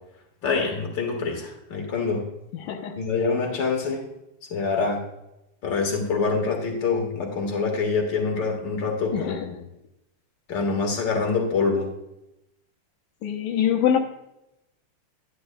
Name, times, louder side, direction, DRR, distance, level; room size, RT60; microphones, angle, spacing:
voice 1, 0.4-2.2 3.0-4.1 4.5-5.0 5.6-9.5 10.5-11.9, left 4 dB, 40° left, 2 dB, 2.0 m, -25 dB
voice 2, 2.6-3.0 9.1-9.4 13.2-14.0, left 9 dB, 80° left, 3 dB, 2.4 m, -24 dB
11.0 x 10.5 x 2.3 m, 0.86 s
omnidirectional pair, 3.6 m